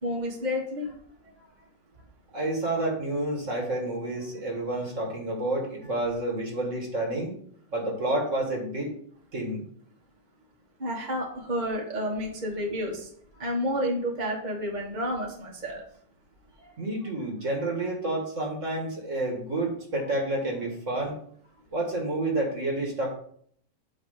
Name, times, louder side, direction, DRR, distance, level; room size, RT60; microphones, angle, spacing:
voice 1, 0.0-0.9 10.8-13.1 13.4-15.8, equal, 25° right, -2 dB, 1.5 m, -30 dB
voice 2, 2.3-7.3 7.7-8.9 9.3-9.6 16.6-21.2 21.7-23.1, right 2 dB, 45° right, 0 dB, 1.9 m, -29 dB
9.1 x 3.3 x 6.5 m, 0.62 s
omnidirectional pair, 1.9 m